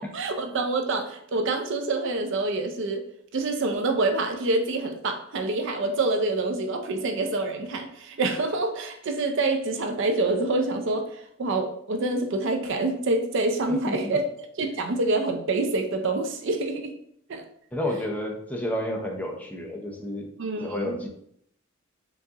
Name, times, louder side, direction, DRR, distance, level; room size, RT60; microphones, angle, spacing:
voice 1, 0.0-3.0 3.3-14.3 14.6-16.9 17.3-17.4 20.4-21.0, right 2 dB, 65° right, 6 dB, 0.5 m, -26 dB
voice 2, 13.7-14.2 17.7-20.3 20.6-21.1, left 1 dB, 10° left, 0 dB, 0.5 m, -31 dB
4.5 x 2.5 x 2.8 m, 0.68 s
head